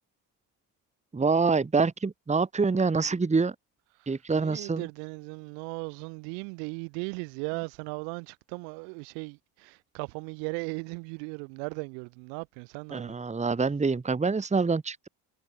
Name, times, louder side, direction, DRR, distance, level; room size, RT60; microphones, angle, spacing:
voice 1, 1.1-3.5 4.1-4.9 12.9-15.1, right 4 dB, 15° right, 1.4 m, -26 dB
voice 2, 4.4-13.2, right 40 dB or more, 85° right, 3.0 m, -37 dB
supercardioid pair, 85°, 43 cm